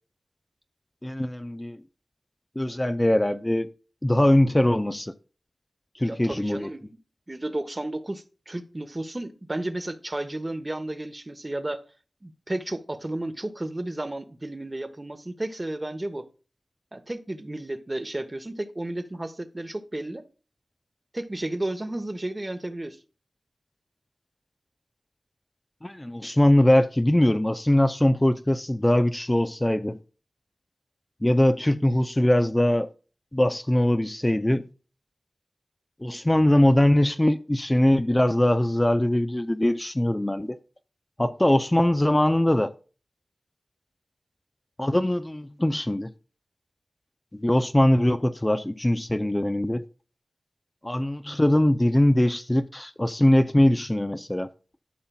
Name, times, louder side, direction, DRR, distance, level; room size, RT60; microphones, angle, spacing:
voice 1, 1.0-1.8 2.6-3.7 4.0-5.1 6.0-6.7 25.8-30.0 31.2-32.9 33.3-34.7 36.0-40.6 41.2-42.7 44.8-46.1 47.3-49.8 50.8-54.5, left 1 dB, 20° left, 0.5 m, -22 dB
voice 2, 6.0-6.9 7.3-11.8 12.2-16.3 16.9-20.2 21.1-23.0, right 1 dB, 30° right, 1.1 m, -33 dB
12.5 x 5.6 x 2.3 m
wide cardioid pair, 55°, 0 cm